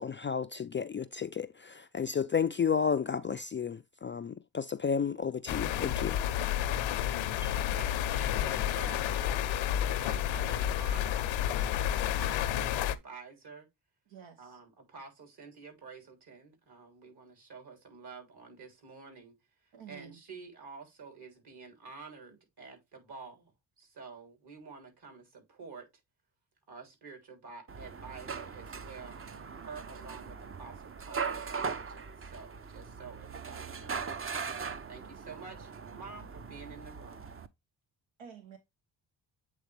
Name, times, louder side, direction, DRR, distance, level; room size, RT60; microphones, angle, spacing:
voice 1, 0.0-6.2 7.4-7.5, left 6 dB, 25° left, 0.3 m, -32 dB
sound 1, 5.5-13.0, left 11 dB, 75° left, 0.7 m, -30 dB
voice 2, 7.7-11.8 12.1-13.7 14.4-19.3 19.9-23.5 23.8-25.8 26.7-29.2 29.5-34.3 34.9-37.3, right 4 dB, 55° right, 3.2 m, -49 dB
voice 3, 14.1-14.6 19.7-20.2 38.2-38.6, right 7 dB, 80° right, 1.1 m, -50 dB
sound 2, 27.7-37.5, right 5 dB, 30° right, 0.7 m, -40 dB
8.3 x 3.5 x 3.3 m
supercardioid pair, 55°, 47 cm